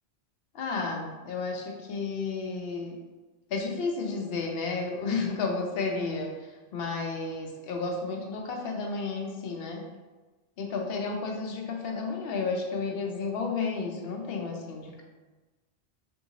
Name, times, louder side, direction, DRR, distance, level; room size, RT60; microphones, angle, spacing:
voice 1, 0.5-2.9 3.5-9.8 10.6-15.0, left 4 dB, 70° left, 2 dB, 0.8 m, -32 dB
3.5 x 2.7 x 2.7 m, 1.2 s
omnidirectional pair, 1.1 m